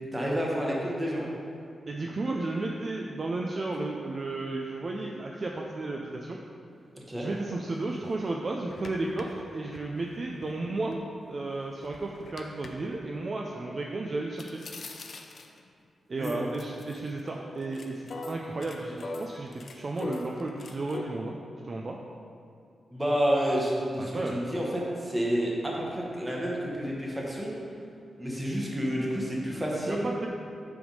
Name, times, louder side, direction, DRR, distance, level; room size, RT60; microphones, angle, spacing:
voice 1, 0.1-1.3 6.9-7.3 16.1-16.5 22.9-27.5 28.2-30.1, equal, 10° right, -4 dB, 1.1 m, -29 dB
voice 2, 1.9-6.4 7.1-14.6 16.1-21.4 21.6-22.0 24.0-24.4 29.9-30.3, right 2 dB, 35° right, -1 dB, 0.4 m, -33 dB
sound 1, 7.7-7.8 8.2-8.3 8.7-11.0 11.4-12.7 14.4-15.7 16.2-17.3 17.6-21.0, left 3 dB, 50° left, 0.5 m, -41 dB
7.8 x 3.5 x 5.3 m, 2.4 s
wide cardioid pair, 150°, 0 cm